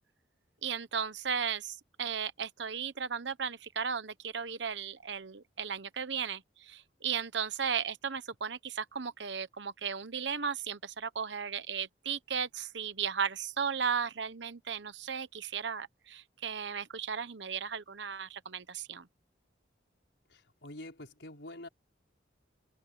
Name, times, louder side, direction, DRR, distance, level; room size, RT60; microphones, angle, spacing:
voice 1, 0.6-19.1, right 6 dB, 75° right, 1.1 m, -35 dB
voice 2, 20.3-21.7, left 1 dB, 70° left, 4.9 m, -46 dB
open air
head